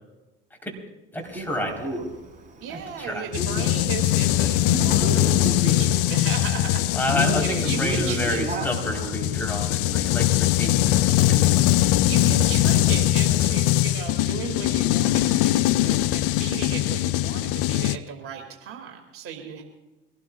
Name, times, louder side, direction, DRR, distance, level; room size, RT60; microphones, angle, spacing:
voice 1, 1.1-2.0 3.0-3.3 6.9-10.9 11.3-11.6, equal, 5° left, 1 dB, 4.2 m, -29 dB
Male speech man speaking, 1.3-9.9, right 3 dB, 25° right, 4.3 m, -34 dB
voice 2, 2.6-6.9 7.4-8.7 10.6-10.7 12.0-19.6, right 8 dB, 45° right, 3 dB, 2.7 m, -36 dB
sound 1, 3.3-18.0, left 14 dB, 50° left, 0.6 m, -22 dB
23.5 x 17.5 x 2.5 m, 1.1 s
figure-of-eight pair, 65°, 29 cm